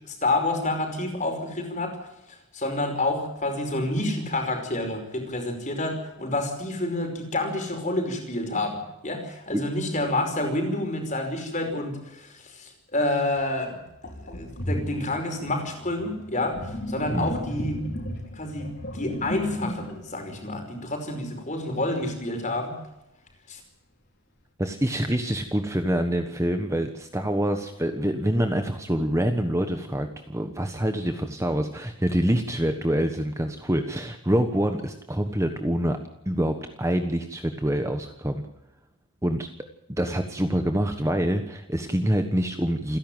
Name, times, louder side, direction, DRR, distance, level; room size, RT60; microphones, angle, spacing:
voice 1, 0.1-2.0 2.3-13.8 14.2-17.8 18.3-22.8 23.5-23.6, left 2 dB, 35° left, 4 dB, 5.2 m, -29 dB
Sink (filling or washing), 14.0-21.3, equal, 50° left, 4.4 m, -35 dB
voice 2, 24.6-36.0 36.2-38.5 39.2-39.5 39.9-43.0, equal, 15° right, 6 dB, 1.3 m, -26 dB
28.5 x 11.5 x 9.2 m, 0.90 s
head